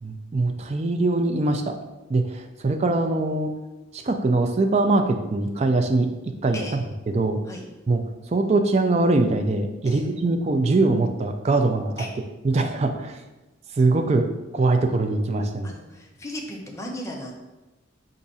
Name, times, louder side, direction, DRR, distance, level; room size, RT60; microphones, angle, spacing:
voice 1, 0.0-1.7 2.1-3.5 3.9-6.6 7.1-7.4 7.9-8.0 8.3-12.0 12.4-13.2 13.8-14.3 14.5-15.7, right 2 dB, 35° right, 5 dB, 0.4 m, -22 dB
voice 2, 15.6-17.3, left 1 dB, 15° left, 0 dB, 0.7 m, -36 dB
4.7 x 2.6 x 4.0 m, 1.1 s
head